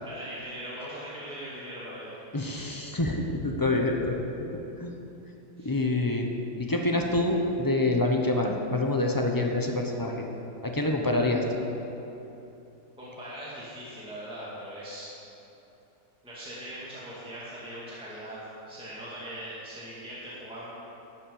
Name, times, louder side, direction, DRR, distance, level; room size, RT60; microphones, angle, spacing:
voice 1, 0.0-2.1 5.6-5.7 13.0-15.1 16.2-20.7, right 1 dB, 5° right, -9 dB, 2.2 m, -40 dB
voice 2, 2.3-4.2 4.8-4.9 5.6-6.3 6.6-10.2 10.6-11.6, left 2 dB, 20° left, 1 dB, 0.7 m, -26 dB
12.0 x 7.5 x 7.1 m, 3.0 s
omnidirectional pair, 1.7 m